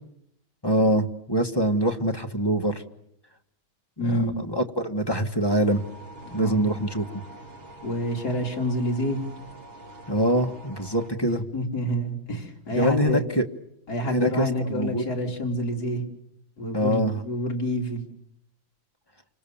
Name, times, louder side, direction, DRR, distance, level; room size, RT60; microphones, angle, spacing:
voice 1, 0.6-2.8 4.0-5.8 6.3-7.1 10.1-11.4 12.7-13.5 14.1-15.0 16.7-17.2, equal, 15° left, 5 dB, 1.3 m, -24 dB
voice 2, 4.0-4.4 6.4-6.6 7.8-9.2 11.5-13.3 13.9-16.0 16.6-18.0, equal, 50° left, 1 dB, 4.0 m, -28 dB
sound 1, 5.4-11.1, right 2 dB, 90° right, 4.5 m, -45 dB
28.5 x 26.0 x 7.1 m, 0.77 s
omnidirectional pair, 2.1 m